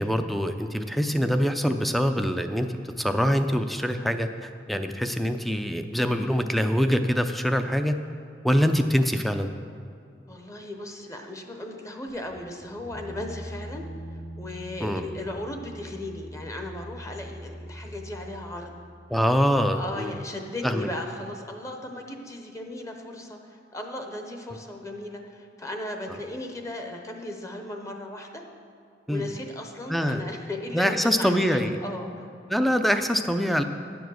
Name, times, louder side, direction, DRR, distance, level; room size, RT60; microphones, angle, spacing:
voice 1, 0.0-2.7 3.0-7.9 8.4-9.5 14.8-15.0 19.1-20.1 20.6-20.9 29.1-29.2 29.9-30.3 30.7-31.8 32.5-33.6, equal, ahead, 7 dB, 0.4 m, -24 dB
voice 2, 10.3-13.9 14.4-18.7 19.7-28.4 29.1-32.3, left 1 dB, 20° left, 3 dB, 0.8 m, -36 dB
sound 1, 12.1-19.5, equal, 70° left, 2.4 m, -42 dB
9.9 x 7.1 x 6.2 m, 2.3 s
head